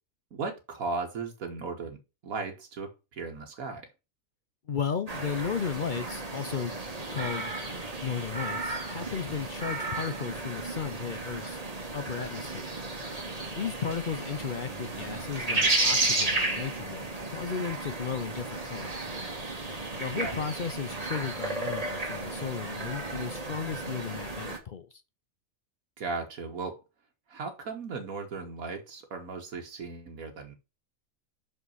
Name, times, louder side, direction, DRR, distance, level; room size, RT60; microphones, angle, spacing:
voice 1, 0.3-3.9 14.6-15.3 20.1-20.3 26.0-26.8 27.3-30.5, right 4 dB, 85° right, 1.7 m, -37 dB
voice 2, 4.7-6.7 7.1-7.5 8.0-12.7 13.6-19.0 20.0-24.9, left 6 dB, 50° left, 0.6 m, -35 dB
sound 1, 5.1-24.6, right 2 dB, 30° right, 1.6 m, -33 dB
6.1 x 5.5 x 5.4 m
omnidirectional pair, 1.4 m